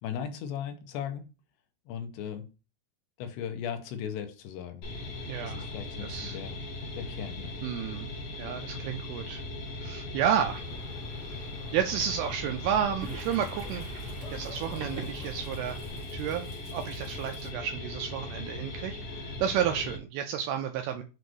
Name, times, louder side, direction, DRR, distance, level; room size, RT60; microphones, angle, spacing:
voice 1, 0.0-1.3 1.9-2.5 3.2-4.8 5.4-6.6 6.9-7.5, left 8 dB, 85° left, 3.0 m, -37 dB
sound 1, 4.8-20.0, left 2 dB, 65° left, 1.9 m, -39 dB
voice 2, 5.3-5.7 6.0-6.4 7.6-8.1 8.4-9.4 9.8-10.7 11.2-13.9 14.3-15.8 16.1-21.0, right 9 dB, 85° right, 2.3 m, -31 dB
sound 2, 10.4-16.0, equal, 40° left, 1.0 m, -48 dB
Toilet flush, 13.0-19.5, right 4 dB, 65° right, 1.4 m, -47 dB
7.7 x 2.6 x 4.7 m
omnidirectional pair, 4.9 m